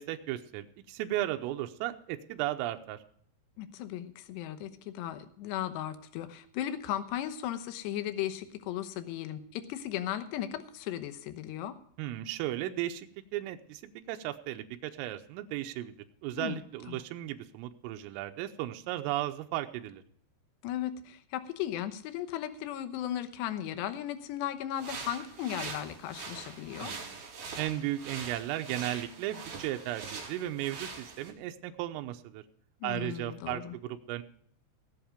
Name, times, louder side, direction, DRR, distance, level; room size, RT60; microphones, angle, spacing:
voice 1, 0.0-3.0 12.0-16.0 16.2-20.0 26.8-27.2 27.6-32.4 32.8-34.2, right 14 dB, 85° right, 6 dB, 3.4 m, -35 dB
voice 2, 3.6-11.8 16.4-16.6 16.9-17.0 20.6-26.9 32.8-33.8, left 11 dB, 75° left, 10 dB, 2.7 m, -36 dB
sound 1, 24.8-31.3, right 5 dB, 50° right, 4.4 m, -43 dB
19.0 x 8.1 x 5.0 m, 0.63 s
omnidirectional pair, 5.9 m